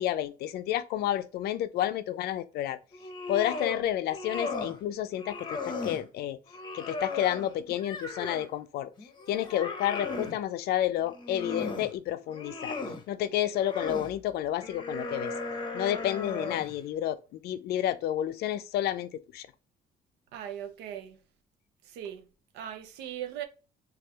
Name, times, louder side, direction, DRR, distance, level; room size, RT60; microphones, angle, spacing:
voice 1, 0.0-2.8 3.3-6.4 6.7-8.9 9.3-12.8 13.1-15.3 15.7-17.2 17.4-19.5, left 12 dB, 70° left, 0.4 m, -30 dB
sound 1, 2.9-3.8 4.1-4.8 5.2-6.0 6.5-8.5 9.0-10.4 11.0-11.9 12.3-13.0 13.5-14.1 14.6-16.8, left 3 dB, 25° left, 0.7 m, -36 dB
voice 2, 20.3-21.2 21.8-22.3 22.5-23.4, right 10 dB, 90° right, 0.5 m, -39 dB
3.3 x 2.4 x 2.9 m
cardioid pair, 110°, 17 cm